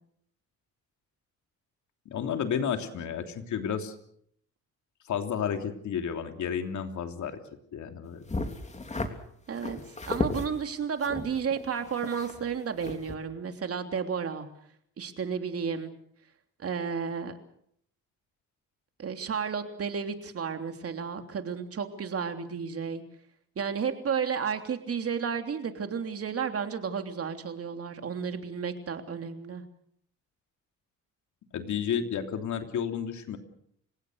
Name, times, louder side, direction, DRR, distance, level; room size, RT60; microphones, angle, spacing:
voice 1, 2.0-3.9 5.1-7.4 7.7-8.2 31.5-33.4, left 7 dB, 70° left, 6 dB, 3.2 m, -31 dB
sound 1, 8.3-9.1 9.6-10.5 11.0-12.5 12.8-13.1, left 2 dB, 25° left, 3.2 m, -34 dB
voice 2, 10.1-14.5 15.0-15.9 16.6-17.3 19.0-23.0 23.5-29.6, right 6 dB, 50° right, 6 dB, 3.2 m, -32 dB
30.0 x 17.5 x 6.6 m, 0.68 s
cardioid pair, 90°, 30 cm